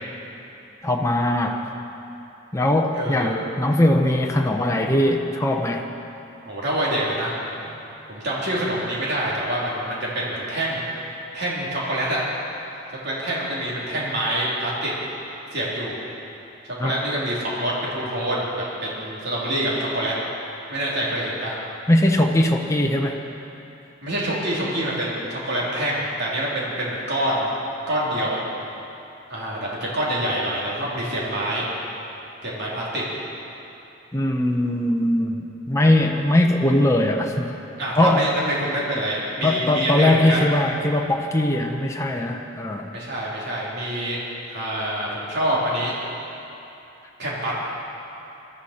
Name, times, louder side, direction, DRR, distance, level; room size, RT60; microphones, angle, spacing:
voice 1, 0.8-1.6 2.5-5.9 16.8-16.9 21.9-23.2 34.1-37.5 38.0-38.3 39.4-42.9, left 1 dB, 15° left, 1 dB, 0.9 m, -20 dB
voice 2, 2.9-3.3 6.4-7.8 8.1-11.0 11.3-12.2 13.0-14.9 15.5-16.0 16.8-20.1 20.7-21.5 24.0-27.5 27.9-28.4 29.3-31.7 32.4-33.0 37.8-40.4 42.9-44.2 44.5-45.9 47.2-47.5, right 1 dB, 60° right, -6 dB, 3.2 m, -26 dB
21.5 x 13.0 x 4.4 m, 2.9 s
head